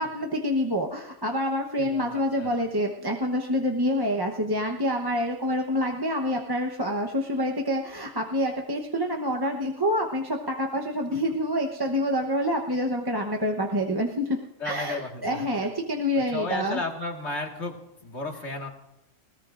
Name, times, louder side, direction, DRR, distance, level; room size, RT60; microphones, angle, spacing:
voice 1, 0.0-14.4 14.6-16.8, equal, 20° right, 1 dB, 0.9 m, -27 dB
voice 2, 1.8-2.5 11.1-11.2 14.6-15.7 16.1-18.7, left 3 dB, 60° left, 2 dB, 2.1 m, -34 dB
20.5 x 19.0 x 2.5 m, 0.86 s
omnidirectional pair, 1.3 m